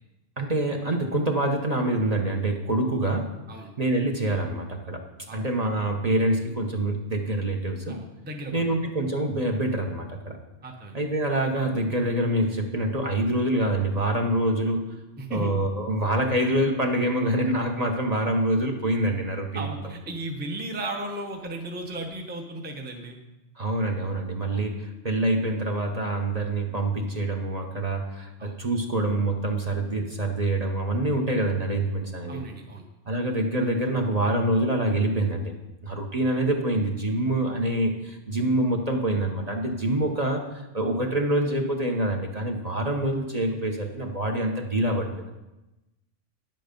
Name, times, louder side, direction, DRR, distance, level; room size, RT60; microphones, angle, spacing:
voice 1, 0.4-3.3 3.8-5.0 5.3-8.0 8.5-10.4 10.9-14.9 15.3-19.7 23.6-32.4 33.1-35.5 35.8-40.4 40.7-45.3, right 1 dB, 35° right, 2 dB, 1.0 m, -26 dB
voice 2, 7.9-8.8 10.6-11.0 15.2-15.5 19.5-23.2 24.5-24.7 28.4-28.6 32.3-32.8, right 2 dB, 10° right, 2 dB, 0.8 m, -35 dB
10.0 x 7.6 x 5.2 m, 1.0 s
omnidirectional pair, 1.3 m